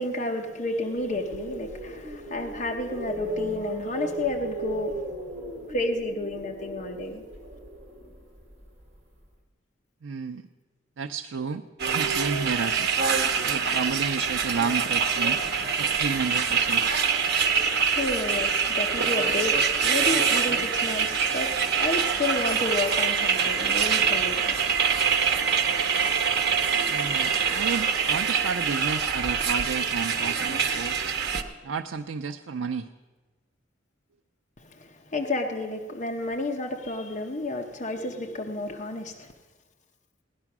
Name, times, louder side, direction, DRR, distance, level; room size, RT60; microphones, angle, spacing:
voice 1, 0.0-5.0 5.7-7.2 17.5-24.6 34.6-39.3, left 2 dB, 40° left, 0.8 m, -31 dB
sound 1, 0.8-8.9, right 1 dB, 35° right, 1.9 m, -36 dB
voice 2, 10.0-10.4 11.0-12.9 13.4-15.4 15.7-16.8 26.9-31.0 31.6-32.9, right 5 dB, 75° right, 0.5 m, -31 dB
sound 2, 11.8-31.4, right 6 dB, 55° right, 1.1 m, -25 dB
17.0 x 11.0 x 6.0 m
head